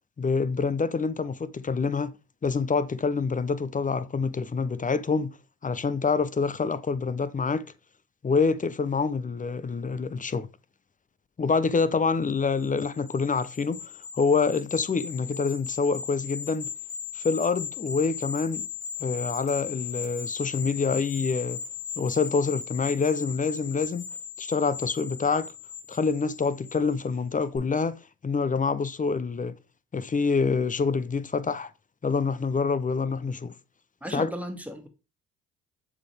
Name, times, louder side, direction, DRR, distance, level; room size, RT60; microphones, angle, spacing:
voice 1, 0.2-2.2 2.4-5.3 5.6-7.7 8.2-10.5 11.4-16.7 17.1-18.7 19.0-21.6 22.0-24.1 24.4-25.5 25.9-29.6 29.9-31.7 32.0-33.5 34.1-34.3, left 4 dB, 25° left, 0.6 m, -26 dB
sound 1, 12.4-27.1 27.4-27.6, left 6 dB, 75° left, 3.3 m, -38 dB
voice 2, 34.0-34.9, equal, 5° right, 1.8 m, -35 dB
7.1 x 4.2 x 3.4 m
hypercardioid pair, 55°, 33 cm